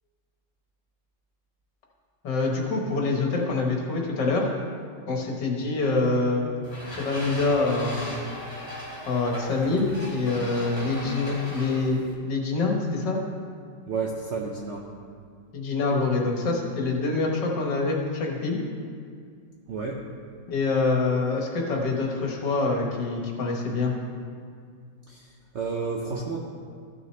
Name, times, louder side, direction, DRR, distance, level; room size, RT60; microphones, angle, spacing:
voice 1, 2.2-4.5 5.1-6.6 6.9-8.2 9.1-13.2 15.5-18.6 20.5-23.9, left 3 dB, 70° left, 0 dB, 1.9 m, -25 dB
sound 1, 6.6-12.1, equal, 15° left, 2.5 m, -38 dB
voice 2, 13.9-14.9 19.7-20.0 25.1-26.4, right 4 dB, 60° right, -1 dB, 0.7 m, -31 dB
14.5 x 6.5 x 3.2 m, 2.2 s
omnidirectional pair, 2.0 m